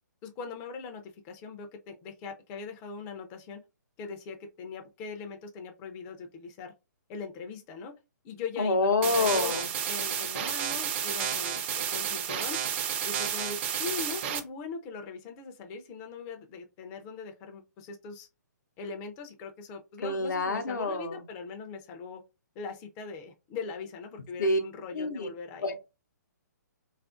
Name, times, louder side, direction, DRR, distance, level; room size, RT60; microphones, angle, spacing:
voice 1, 0.2-3.6 4.0-6.7 7.1-7.9 8.2-12.6 13.0-18.3 18.8-22.2 22.6-25.7, left 5 dB, 25° left, 0.4 m, -41 dB
voice 2, 8.6-9.7 20.0-21.2 24.4-24.6 24.9-25.3 25.6-25.8, left 2 dB, 75° left, 0.7 m, -27 dB
sound 1, 9.0-14.4, right 8 dB, 40° right, 0.5 m, -31 dB
3.3 x 2.4 x 2.4 m
figure-of-eight pair, 135°, 10 cm